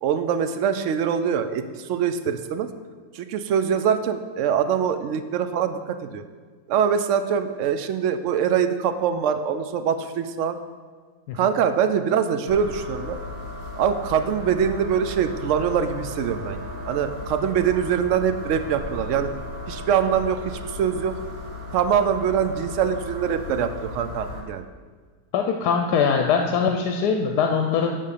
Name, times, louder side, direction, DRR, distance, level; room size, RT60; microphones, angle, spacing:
voice 1, 0.0-2.7 3.1-6.2 6.7-10.6 11.3-13.2 13.8-19.3 19.7-21.1 21.7-24.7, right 7 dB, 70° right, 9 dB, 0.7 m, -23 dB
sound 1, 12.5-24.4, left 2 dB, 40° right, 1.5 m, -36 dB
voice 2, 25.3-28.0, left 6 dB, 80° left, 3 dB, 1.2 m, -22 dB
10.5 x 3.7 x 6.6 m, 1.6 s
omnidirectional pair, 1.7 m